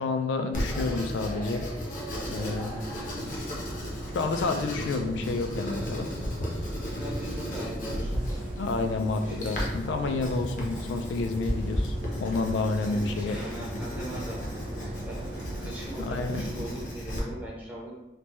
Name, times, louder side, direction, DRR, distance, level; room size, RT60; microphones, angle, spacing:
voice 1, 0.0-1.7 2.3-2.8 4.1-6.1 8.6-13.4 16.0-16.5, left 3 dB, 70° left, 6 dB, 0.3 m, -29 dB
Writing, 0.5-17.2, equal, 45° left, 0.7 m, -35 dB
sound 1, 2.0-16.9, equal, 65° right, 0.5 m, -39 dB
voice 2, 6.8-8.5 9.2-9.6 12.8-17.9, equal, 10° right, -5 dB, 0.5 m, -41 dB
3.2 x 2.1 x 2.9 m, 0.96 s
head